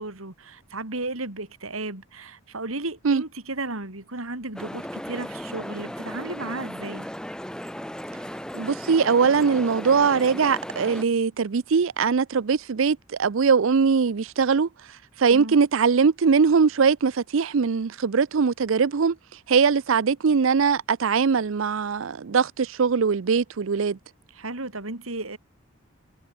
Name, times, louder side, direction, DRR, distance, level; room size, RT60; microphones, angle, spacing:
voice 1, 0.0-7.1 15.3-15.6 24.3-25.4, right 2 dB, 90° right, 3.7 m, -34 dB
sound 1, 4.6-11.0, equal, 5° left, 2.6 m, -36 dB
voice 2, 8.5-14.7 15.2-19.2 19.5-24.0, right 5 dB, 65° right, 0.5 m, -21 dB
head